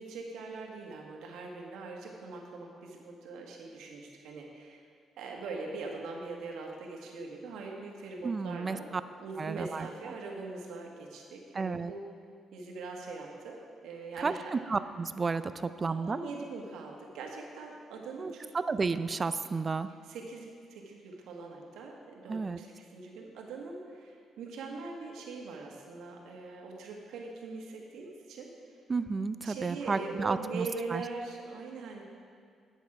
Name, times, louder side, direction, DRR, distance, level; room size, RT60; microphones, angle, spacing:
voice 1, 0.0-4.8 5.2-8.9 9.2-12.0 12.5-14.5 15.9-18.5 20.0-28.5 29.4-32.0, right 3 dB, 85° right, 0 dB, 1.5 m, -42 dB
voice 2, 8.2-9.0 9.4-9.9 11.5-11.9 14.2-16.2 18.2-19.9 22.3-22.6 28.9-30.7 30.9-31.0, right 4 dB, 30° right, 13 dB, 0.4 m, -32 dB
9.7 x 8.1 x 4.8 m, 2.2 s
cardioid pair, 90°, 0 cm